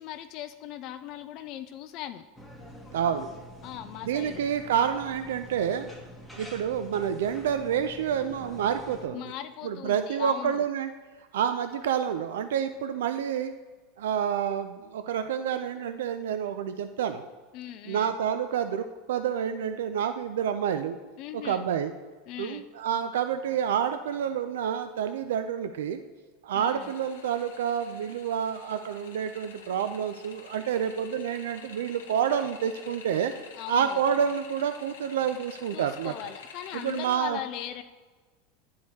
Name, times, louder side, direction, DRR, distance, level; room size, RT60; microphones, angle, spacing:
voice 1, 0.0-2.3 3.6-4.5 9.1-10.7 17.5-18.1 21.2-21.7 22.3-22.7 26.5-26.9 33.5-34.0 35.7-37.8, left 11 dB, 55° left, 9 dB, 0.3 m, -39 dB
sound 1, 2.4-9.1, equal, ahead, 1.2 m, -46 dB
voice 2, 2.9-3.3 4.0-5.9 6.3-9.2 9.6-10.9 11.3-13.5 14.0-17.3 17.9-21.0 21.4-21.9 22.4-26.0 26.4-33.3 33.7-36.1 36.8-37.4, right 8 dB, 85° right, 9 dB, 0.3 m, -28 dB
sound 2, 26.8-37.2, left 6 dB, 90° left, 0.9 m, -49 dB
10.5 x 4.6 x 2.8 m, 1.4 s
supercardioid pair, 110°, 0 cm